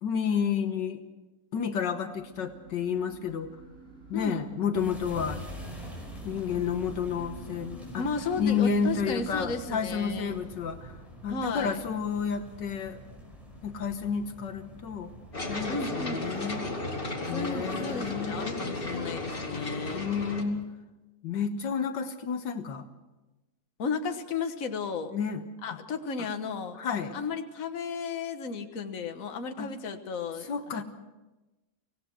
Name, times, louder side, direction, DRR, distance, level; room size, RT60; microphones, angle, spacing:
voice 1, 0.0-1.0 1.5-3.5 4.1-5.5 6.2-8.1 8.4-10.9 11.2-13.0 13.6-15.1 15.5-16.7 17.3-19.2 19.9-20.6 21.2-22.9 25.1-25.4 25.7-25.8 26.2-26.3 26.8-27.2 29.6-29.7 30.4-30.8, left 6 dB, 75° left, 7 dB, 1.8 m, -31 dB
sound 1, 2.1-9.5, right 3 dB, 40° right, 3.1 m, -46 dB
voice 2, 4.1-4.5 8.0-10.4 11.3-11.8 15.7-16.2 17.2-20.1 23.8-25.1 25.6-26.8 27.1-30.8, left 4 dB, 50° left, 6 dB, 1.7 m, -34 dB
sound 2, 4.7-15.7, equal, ahead, 5.4 m, -46 dB
sound 3, 15.3-20.4, left 2 dB, 30° left, 2.5 m, -34 dB
25.0 x 18.0 x 6.3 m, 1.1 s
omnidirectional pair, 2.0 m